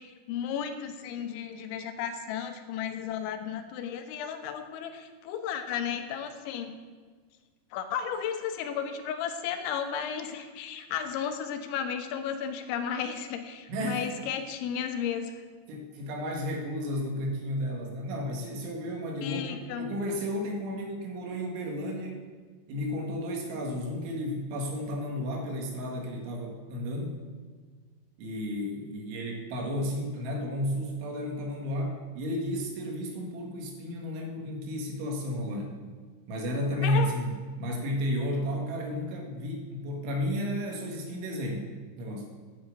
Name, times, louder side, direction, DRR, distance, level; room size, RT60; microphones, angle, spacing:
voice 1, 0.0-6.8 7.7-15.3 19.2-19.9 36.8-37.2, left 8 dB, 85° left, 7 dB, 3.2 m, -34 dB
voice 2, 13.7-14.0 15.7-22.3 22.7-27.2 28.2-35.7 36.3-41.7 42.0-42.3, equal, 80° right, 1 dB, 4.2 m, -32 dB
9.5 x 8.1 x 8.4 m, 1.5 s
omnidirectional pair, 5.3 m